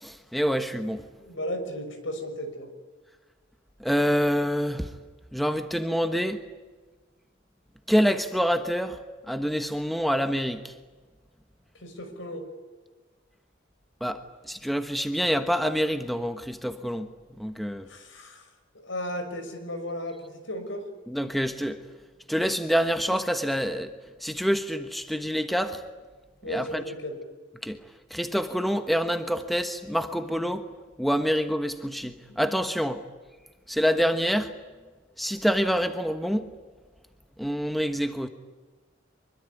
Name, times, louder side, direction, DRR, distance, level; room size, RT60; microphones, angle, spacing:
voice 1, 0.0-1.1 3.8-4.9 5.3-6.4 7.9-9.0 9.3-10.7 14.0-17.1 17.4-17.9 21.1-21.8 22.3-23.9 24.2-25.8 26.5-26.8 27.6-27.8 28.1-30.7 31.0-33.0 33.7-34.5 35.2-36.5 37.4-38.3, equal, ahead, 8 dB, 1.2 m, -26 dB
voice 2, 1.2-2.7 11.8-12.5 17.9-18.4 18.7-20.9 26.4-27.2 32.3-32.4, equal, 75° left, 8 dB, 6.0 m, -35 dB
25.0 x 23.5 x 9.6 m, 1.3 s
head